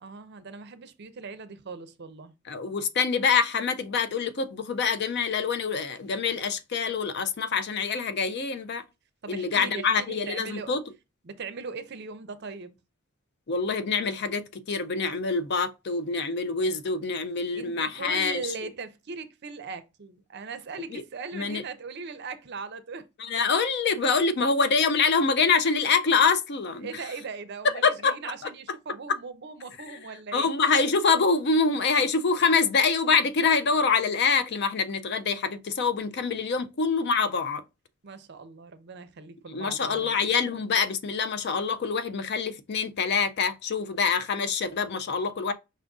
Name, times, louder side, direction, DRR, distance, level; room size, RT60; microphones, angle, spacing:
voice 1, 0.0-2.3 9.2-10.7 11.2-12.7 17.5-23.1 26.8-30.5 38.0-40.1, right 4 dB, 50° right, 0.6 m, -39 dB
voice 2, 2.5-8.8 9.3-10.8 13.5-18.5 20.9-21.0 21.3-21.6 23.2-26.9 27.8-28.3 29.9-30.0 30.3-37.6 39.5-45.5, left 5 dB, 50° left, 0.5 m, -25 dB
5.4 x 2.6 x 3.5 m
head